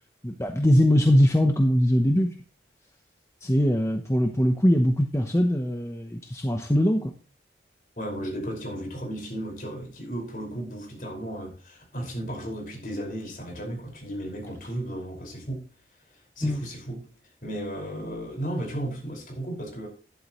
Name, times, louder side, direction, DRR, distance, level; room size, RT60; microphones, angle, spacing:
voice 1, 0.2-2.3 3.4-7.1 16.4-16.7, equal, 15° left, 0.9 m, -21 dB
voice 2, 8.0-15.6 16.4-17.1 17.4-19.9, right 1 dB, 50° left, 5.1 m, -34 dB
12.0 x 11.5 x 3.1 m
head